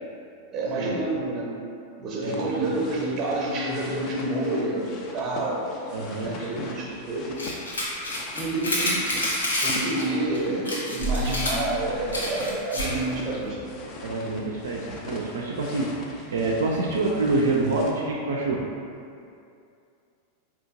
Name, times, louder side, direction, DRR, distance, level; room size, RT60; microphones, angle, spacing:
voice 1, 0.5-1.6 2.0-5.8 6.2-7.4 8.3-9.0 9.5-13.6, right 2 dB, 30° right, -2 dB, 0.7 m, -28 dB
sound 1, 2.2-17.9, left 2 dB, 35° left, 0.5 m, -42 dB
voice 2, 2.2-3.2 5.9-6.3 14.0-18.6, right 2 dB, 65° right, -3 dB, 0.3 m, -27 dB
sound 2, 7.4-10.0 10.3-10.4 10.7-13.0, left 1 dB, 75° left, 0.7 m, -28 dB
4.3 x 3.0 x 2.5 m, 2.5 s
figure-of-eight pair, 90°, 0 cm